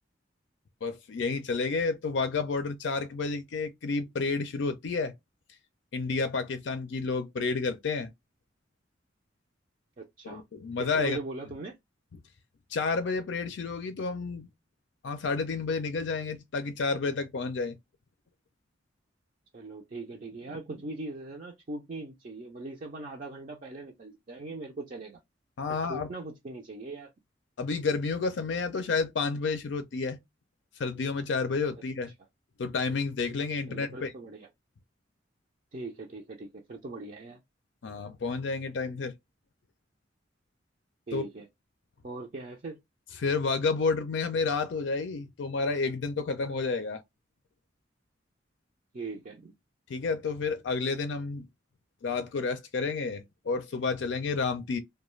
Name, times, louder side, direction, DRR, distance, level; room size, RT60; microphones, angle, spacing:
voice 1, 0.8-5.1 5.9-8.1 10.2-11.2 12.7-14.5 15.0-17.8 25.6-26.1 27.6-30.2 30.8-32.1 32.6-34.1 37.8-39.1 41.1-41.2 43.2-47.0 49.9-51.5 52.0-54.8, left 4 dB, 70° left, 0.4 m, -30 dB
voice 2, 10.0-10.4 10.8-11.8 19.5-25.2 25.7-27.1 33.7-34.5 35.7-37.4 41.1-41.5 42.0-42.8 48.9-49.5, right 2 dB, 45° right, 0.5 m, -40 dB
2.4 x 2.2 x 3.0 m
head